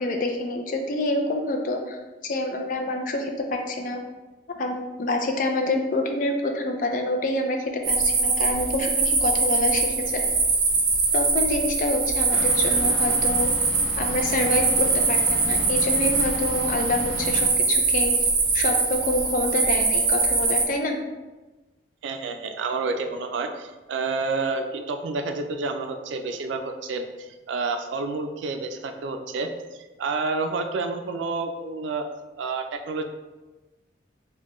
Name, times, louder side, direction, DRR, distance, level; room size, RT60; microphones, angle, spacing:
voice 1, 0.0-2.0 2.2-4.0 4.6-10.2 11.1-13.5 14.0-18.1 18.5-21.0, left 2 dB, 45° left, 3 dB, 0.4 m, -27 dB
sound 1, 7.8-20.6, right 4 dB, 45° right, 0.6 m, -23 dB
sound 2, 12.3-17.5, left 1 dB, 10° left, 0.9 m, -36 dB
voice 2, 22.0-29.5 30.0-32.1 32.4-33.0, right 3 dB, 90° right, 6 dB, 0.4 m, -29 dB
4.1 x 2.2 x 3.0 m, 1.2 s
head